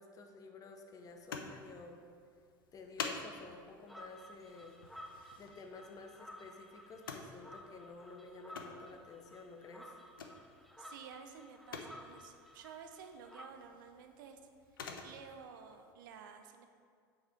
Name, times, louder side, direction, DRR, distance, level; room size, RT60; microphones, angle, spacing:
voice 1, 0.0-2.0 2.7-4.8 5.4-10.0, left 3 dB, 30° left, 3 dB, 0.8 m, -52 dB
sound 1, 1.1-15.9, left 5 dB, 75° left, 0.5 m, -50 dB
sound 2, 3.9-13.5, left 1 dB, ahead, 0.4 m, -55 dB
voice 2, 10.8-14.4 14.7-16.6, right 6 dB, 65° right, 6 dB, 0.5 m, -52 dB
5.8 x 4.2 x 5.0 m, 2.1 s
figure-of-eight pair, 70°, 12 cm